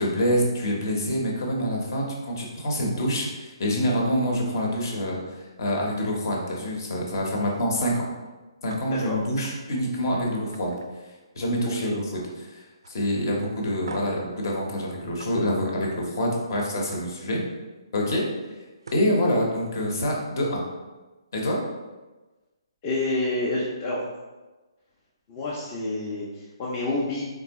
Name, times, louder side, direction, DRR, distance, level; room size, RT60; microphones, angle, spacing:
voice 1, 0.0-5.2 5.6-8.0 8.6-10.7 11.4-17.4 17.9-18.2 18.9-20.6 21.3-21.6, equal, 45° left, -1 dB, 0.9 m, -26 dB
sound 1, 8.7-8.8 9.2-9.6 10.0-10.1 10.5-11.7 12.0-12.4 12.8-13.0 13.9-14.2 15.2-15.3 16.5-16.8 18.4-18.5 18.8-19.1, right 3 dB, 60° right, 0.4 m, -42 dB
voice 2, 8.9-9.2 11.8-11.9 22.8-24.0 25.3-27.2, left 2 dB, 25° left, -6 dB, 0.6 m, -28 dB
3.7 x 3.6 x 2.9 m, 1.2 s
figure-of-eight pair, 135°, 3 cm